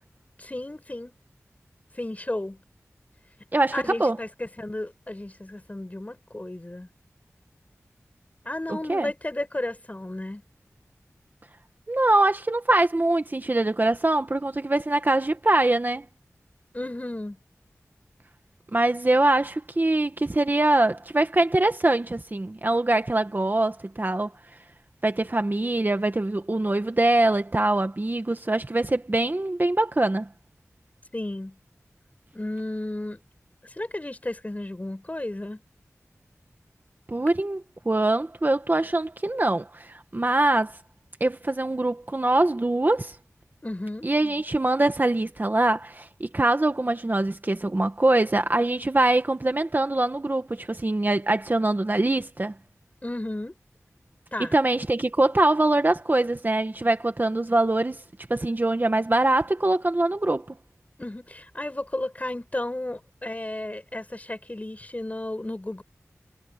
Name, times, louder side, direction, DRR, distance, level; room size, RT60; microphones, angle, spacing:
voice 1, 0.4-1.2 1.9-2.6 3.7-6.9 8.4-10.4 16.7-17.4 31.1-31.6 32.3-33.2 33.6-35.6 43.6-44.1 53.0-53.5 54.3-54.5 61.0-65.8, left 1 dB, 25° left, 6.8 m, -33 dB
voice 2, 3.5-4.2 8.7-9.1 11.9-16.0 18.7-24.3 25.0-30.3 37.1-40.8 41.2-43.1 44.0-52.5 54.4-58.0 58.3-60.6, right 2 dB, 35° right, 1.6 m, -23 dB
wide cardioid pair, 65°, 5 cm